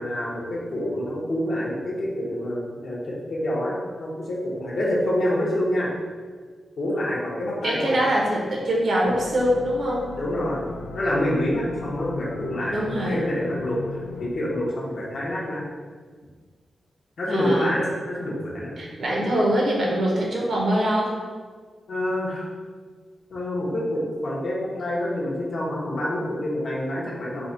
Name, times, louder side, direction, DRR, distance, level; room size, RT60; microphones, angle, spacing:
voice 1, 0.0-5.9 6.8-8.1 10.2-10.6 10.9-15.7 17.2-18.7 21.9-22.5 23.3-27.5, left 1 dB, 55° left, -5 dB, 1.1 m, -27 dB
voice 2, 7.6-10.1 12.7-13.2 17.3-17.7 18.8-21.1, equal, 55° right, -2 dB, 0.9 m, -23 dB
sound 1, 9.0-14.3, left 4 dB, 85° left, 0.4 m, -36 dB
4.8 x 2.3 x 4.0 m, 1.5 s
wide cardioid pair, 160°, 0 cm